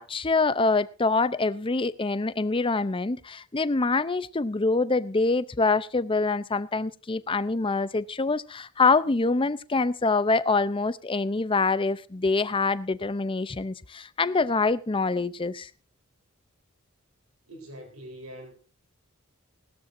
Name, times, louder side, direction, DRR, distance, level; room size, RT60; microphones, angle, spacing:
voice 1, 0.0-15.7, left 3 dB, 25° left, 0.6 m, -25 dB
voice 2, 17.5-18.5, equal, 75° right, 3.9 m, -43 dB
19.0 x 13.0 x 2.6 m
head